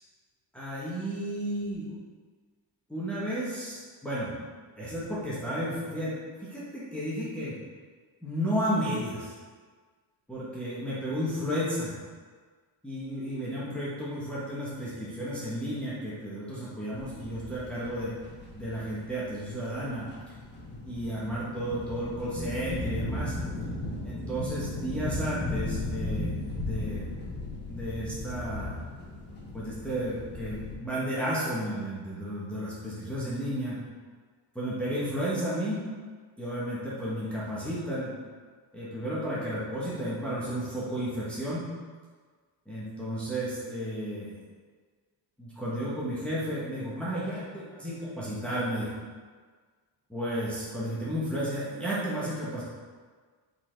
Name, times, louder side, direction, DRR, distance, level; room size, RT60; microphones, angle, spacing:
voice 1, 0.5-1.9 2.9-4.3 4.7-6.1 6.4-7.5 8.2-9.3 10.3-11.9 12.8-18.1 18.5-20.1 20.8-23.4 24.0-27.1 27.7-28.8 29.5-33.8 34.5-35.8 36.4-38.1 38.7-41.7 42.7-44.4 45.4-48.9 50.1-52.6, equal, ahead, -9 dB, 1.3 m, -33 dB
sound 1, 16.9-30.8, left 2 dB, 20° left, 1.2 m, -36 dB
5.8 x 4.3 x 4.5 m, 1.5 s
cardioid pair, 165°, 48 cm